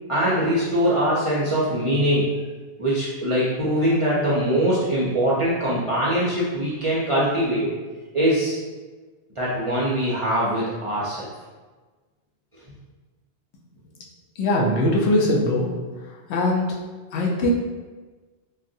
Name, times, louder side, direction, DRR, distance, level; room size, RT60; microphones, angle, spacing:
voice 1, 0.1-2.3 2.8-7.7 8.1-8.6 9.4-11.3, equal, 45° right, -8 dB, 0.4 m, -22 dB
voice 2, 14.4-15.7 16.3-16.8 17.1-17.5, left 1 dB, 75° left, -2 dB, 0.9 m, -21 dB
3.8 x 2.1 x 2.6 m, 1.3 s
omnidirectional pair, 1.2 m